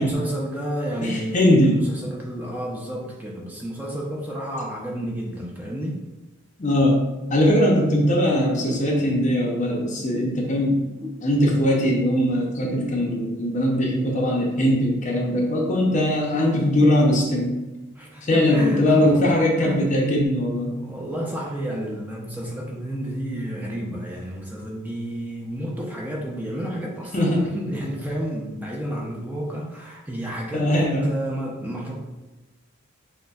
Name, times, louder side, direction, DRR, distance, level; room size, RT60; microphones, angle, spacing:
voice 1, 0.0-6.0 11.0-11.1 17.9-19.2 19.6-19.9 20.7-30.7 31.0-32.0, equal, 10° right, -3 dB, 0.5 m, -30 dB
voice 2, 1.0-1.8 6.6-7.0 7.3-10.8 11.2-17.5 18.2-20.7 27.1-27.4 30.5-31.0, left 1 dB, 35° left, 0 dB, 0.6 m, -20 dB
6.5 x 2.2 x 2.3 m, 1.1 s
head